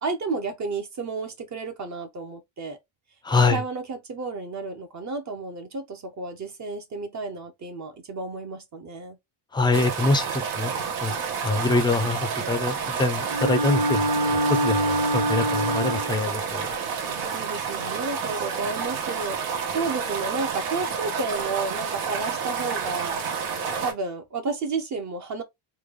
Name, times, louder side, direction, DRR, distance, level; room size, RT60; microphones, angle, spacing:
voice 1, 0.0-2.8 3.5-9.2 17.0-23.3 23.8-25.4, right 3 dB, 35° right, 0.7 m, -32 dB
voice 2, 3.2-3.6 9.5-10.7 11.0-11.1 11.4-14.1 14.6-16.7, left 3 dB, 10° left, 0.5 m, -24 dB
Microremous d'eau, 9.7-23.9, right 6 dB, 80° right, 1.3 m, -30 dB
Bowed string instrument, 13.3-16.3, right 1 dB, 55° right, 1.2 m, -25 dB
3.3 x 2.2 x 3.6 m
cardioid pair, 135°, 49 cm